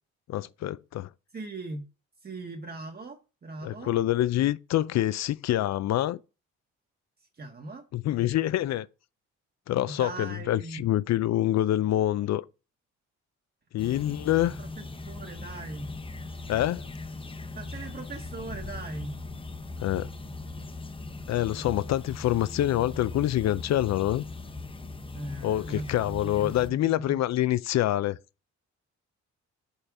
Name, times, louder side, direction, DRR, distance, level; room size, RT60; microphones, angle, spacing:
voice 1, 0.3-1.1 3.6-6.2 7.9-8.9 9.7-12.5 13.7-14.6 16.5-16.8 19.8-20.1 21.3-24.2 25.4-28.2, left 13 dB, 60° left, 0.5 m, -26 dB
voice 2, 1.3-1.9 2.2-3.9 7.3-7.8 9.9-10.9 14.3-15.9 17.5-19.2 25.1-27.2, right 2 dB, 30° right, 1.1 m, -40 dB
sound 1, 13.8-26.7, left 3 dB, 15° left, 0.8 m, -39 dB
5.6 x 4.2 x 4.7 m
cardioid pair, 90°, 30 cm